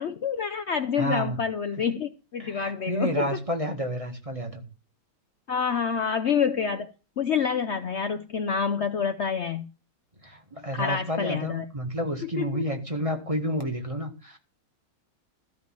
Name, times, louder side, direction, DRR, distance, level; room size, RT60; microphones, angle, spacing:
voice 1, 0.0-3.3 5.5-6.9 7.2-9.7 10.7-11.6 12.2-12.7, left 6 dB, 75° left, 9 dB, 0.6 m, -27 dB
voice 2, 1.0-1.4 2.4-4.6 10.2-14.4, equal, 15° right, 5 dB, 1.7 m, -30 dB
14.0 x 5.2 x 8.9 m, 0.33 s
omnidirectional pair, 2.2 m